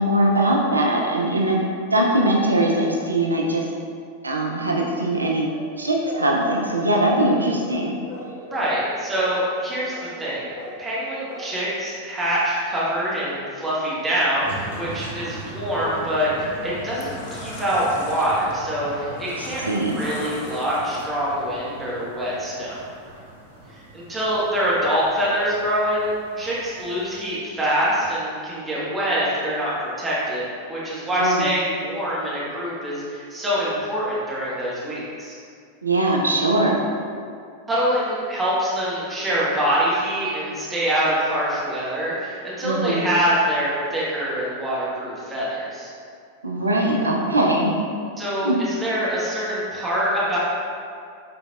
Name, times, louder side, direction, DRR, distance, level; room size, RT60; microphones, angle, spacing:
voice 1, 0.0-1.6 1.9-3.7 4.2-5.5 5.8-8.0 19.4-20.0 31.2-31.5 35.8-36.8 42.6-43.0 46.4-47.8 48.4-48.6, right 1 dB, 80° right, -1 dB, 0.4 m, -21 dB
sound 1, 5.5-7.8 8.1-8.8 9.1-9.6 9.8-10.3 10.5-10.9 11.2-11.5 11.9-12.0 12.2-12.3, left 2 dB, 65° left, 1.0 m, -39 dB
voice 2, 8.5-10.5 10.8-22.9 23.9-29.7 30.0-35.4 37.7-45.9 48.2-50.4, equal, 15° right, -8 dB, 1.2 m, -25 dB
sound 2, 14.4-27.4, right 2 dB, 65° right, 1.3 m, -40 dB
sound 3, 16.0-16.3 16.7-21.4, left 3 dB, 50° left, 0.4 m, -39 dB
4.0 x 3.8 x 2.3 m, 2.3 s
figure-of-eight pair, 90°, 0 cm